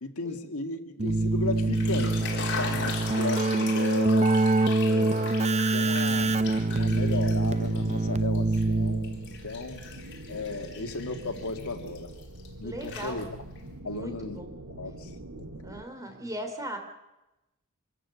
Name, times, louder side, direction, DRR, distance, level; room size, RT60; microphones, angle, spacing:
voice 1, 0.0-4.4 4.8-6.4 6.7-9.8 10.3-12.2 12.6-13.3 13.8-14.4 14.8-15.1 15.4-15.8 16.1-16.2, left 3 dB, 80° left, 6 dB, 1.9 m, -35 dB
Keyboard (musical), 1.0-9.4, right 2 dB, 30° right, 0.7 m, -25 dB
sound 1, 1.6-8.0 8.3-12.5 12.8-13.6, left 5 dB, 55° left, 3.8 m, -39 dB
sound 2, 6.1-15.8, right 1 dB, 70° right, 1.9 m, -44 dB
voice 2, 12.6-13.2 13.8-14.5 15.6-16.8, right 1 dB, 15° right, 4 dB, 3.2 m, -38 dB
25.5 x 14.0 x 8.2 m, 1.0 s
head